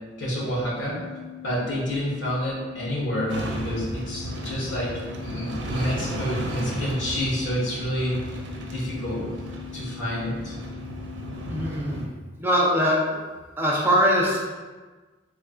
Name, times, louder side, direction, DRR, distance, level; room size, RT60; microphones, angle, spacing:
voice 1, 0.2-1.0 1.4-8.2 8.7-9.3 9.7-10.5, equal, 85° left, -7 dB, 1.4 m, -28 dB
sound 1, 0.8-11.6, left 13 dB, 55° left, 1.5 m, -42 dB
sound 2, 3.3-12.1, right 1 dB, 75° right, 0.5 m, -34 dB
voice 2, 11.5-12.1 12.4-13.0 13.6-14.5, equal, 10° right, -5 dB, 0.6 m, -22 dB
4.0 x 3.3 x 2.3 m, 1.3 s
head